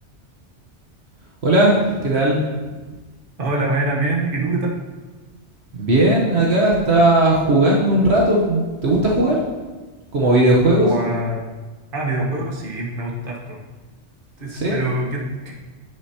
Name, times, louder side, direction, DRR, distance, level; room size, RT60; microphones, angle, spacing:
voice 1, 1.4-2.8 5.7-9.4 10.1-10.9 14.5-14.8, right 1 dB, 65° right, -4 dB, 1.4 m, -17 dB
voice 2, 3.4-4.7 10.8-11.5 11.9-13.6 14.4-15.5, right 2 dB, 50° right, -2 dB, 1.5 m, -24 dB
9.7 x 9.0 x 2.9 m, 1.3 s
omnidirectional pair, 1.2 m